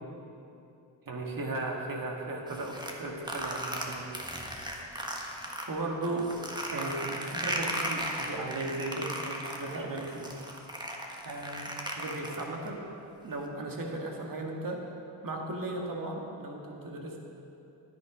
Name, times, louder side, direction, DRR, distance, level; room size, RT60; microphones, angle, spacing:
voice 1, 1.1-4.1 5.4-6.3 6.7-10.3 11.2-12.9 13.2-14.8 15.2-17.2, right 2 dB, 45° right, 0 dB, 2.0 m, -36 dB
sound 1, 2.5-5.7 6.0-12.7, right 1 dB, 10° right, 1.5 m, -36 dB
10.0 x 9.4 x 5.0 m, 2.8 s
supercardioid pair, 55°, 45 cm